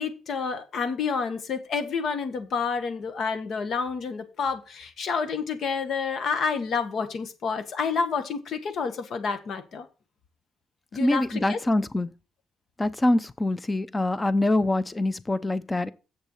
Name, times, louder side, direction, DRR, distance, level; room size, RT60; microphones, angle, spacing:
voice 1, 0.0-9.9 10.9-11.6, left 5 dB, 60° left, 1.6 m, -29 dB
voice 2, 11.0-12.1 12.8-15.9, left 2 dB, 20° left, 0.7 m, -24 dB
7.6 x 6.8 x 5.7 m
cardioid pair, 90°, 0 cm